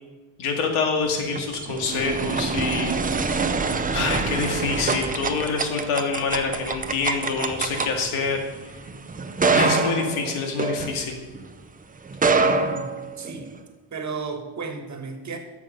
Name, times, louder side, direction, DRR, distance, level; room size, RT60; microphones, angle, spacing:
voice 1, 0.4-3.6 3.9-8.4 9.5-11.2, left 4 dB, 80° left, 3 dB, 2.3 m, -26 dB
sound 1, 1.1-11.5 12.1-13.6, right 4 dB, 15° right, 0.6 m, -25 dB
voice 2, 12.4-13.5 13.9-15.4, right 4 dB, 35° right, 6 dB, 1.7 m, -34 dB
12.5 x 7.3 x 5.4 m, 1.2 s
cardioid pair, 145°, 50 cm